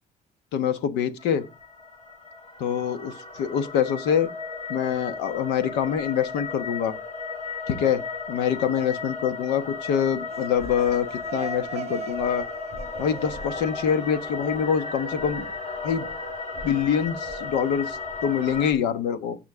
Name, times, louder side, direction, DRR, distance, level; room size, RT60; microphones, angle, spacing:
voice 1, 0.5-1.5 2.6-4.3 4.7-7.0 7.7-12.5 13.0-15.4 15.8-16.1 16.6-19.4, left 8 dB, 90° left, 1.1 m, -25 dB
sound 1, 1.2-18.7, left 4 dB, 40° left, 5.3 m, -35 dB
sound 2, 10.1-14.8, right 8 dB, 40° right, 0.7 m, -40 dB
16.5 x 5.7 x 3.6 m
cardioid pair, 110°, 17 cm